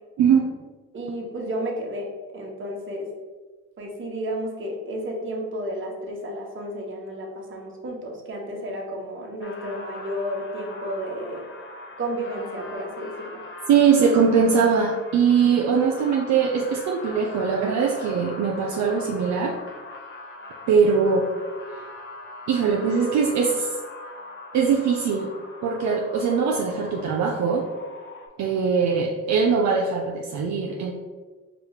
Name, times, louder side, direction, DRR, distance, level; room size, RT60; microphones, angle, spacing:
voice 1, 0.2-0.5 13.7-19.5 20.7-21.3 22.5-23.7 24.5-25.3 25.6-27.6 28.4-30.9, right 6 dB, 65° right, 0 dB, 0.5 m, -21 dB
voice 2, 0.9-3.1 3.8-11.5 12.0-13.4, equal, 40° right, -1 dB, 1.0 m, -32 dB
sound 1, 9.4-28.3, left 2 dB, 40° left, 0.7 m, -41 dB
4.9 x 2.4 x 3.1 m, 1.3 s
cardioid pair, 90°, 30 cm